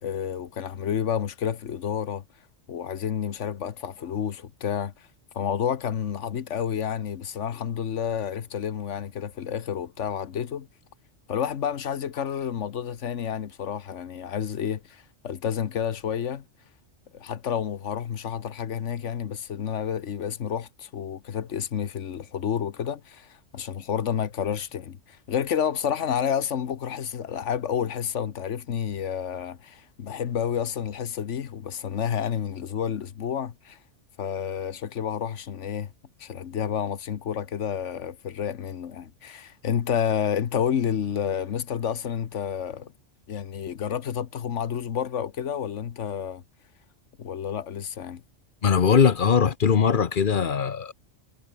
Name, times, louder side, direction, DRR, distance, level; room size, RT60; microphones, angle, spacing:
voice 1, 0.0-2.2 2.7-5.1 5.3-10.7 11.3-16.4 17.1-33.8 34.2-35.9 36.2-42.9 43.3-46.4 47.2-48.2, left 8 dB, 75° left, 1.4 m, -30 dB
voice 2, 48.6-50.9, left 6 dB, 45° left, 1.0 m, -20 dB
omnidirectional pair, 1.2 m